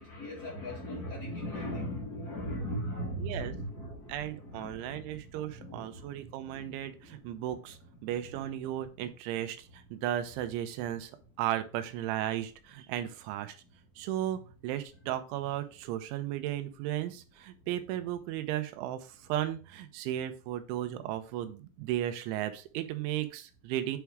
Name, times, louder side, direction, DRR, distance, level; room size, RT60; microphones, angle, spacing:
voice 1, 0.0-7.3 8.0-8.4, equal, 85° left, -4 dB, 0.8 m, -39 dB
voice 2, 3.2-3.5 4.1-11.1 11.4-13.6 14.0-24.0, right 12 dB, 85° right, 9 dB, 3.1 m, -35 dB
8.3 x 3.5 x 4.6 m, 0.35 s
omnidirectional pair, 5.4 m